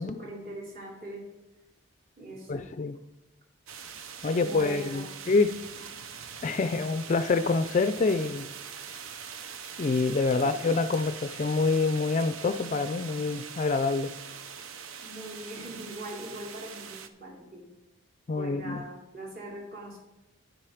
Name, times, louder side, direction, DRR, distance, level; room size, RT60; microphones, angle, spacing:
voice 1, 0.0-1.3 2.2-2.7 4.3-5.1 5.8-5.9 10.4-10.5 15.0-17.7 18.3-20.0, right 1 dB, 45° right, -2 dB, 2.9 m, -42 dB
voice 2, 2.5-3.0 4.2-5.6 6.4-8.5 9.8-14.1 18.3-18.8, left 3 dB, 35° left, 11 dB, 0.3 m, -26 dB
sound 1, 3.7-17.1, right 7 dB, 80° right, 0.7 m, -43 dB
9.3 x 7.6 x 4.9 m, 0.95 s
head